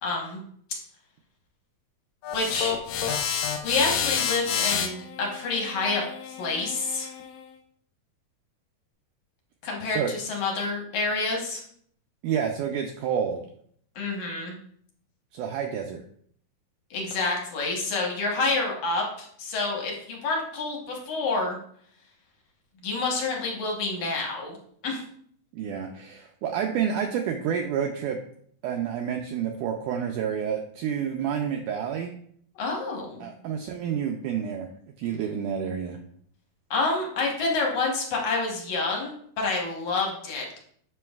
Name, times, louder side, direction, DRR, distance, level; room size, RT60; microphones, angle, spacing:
voice 1, 0.0-0.4 2.3-2.7 3.6-7.1 9.6-11.6 14.0-14.5 16.9-21.6 22.8-24.6 24.8-25.0 32.6-33.3 36.7-40.6, left 3 dB, 65° left, -1 dB, 2.3 m, -28 dB
sound 1, 2.2-7.4, left 7 dB, 80° left, 1.7 m, -30 dB
voice 2, 9.8-10.1 12.2-13.5 15.3-16.0 25.5-28.2 28.6-32.1 33.2-34.7 35.0-36.0, right 8 dB, 85° right, 3 dB, 1.8 m, -29 dB
7.6 x 6.1 x 2.4 m, 0.62 s
omnidirectional pair, 4.2 m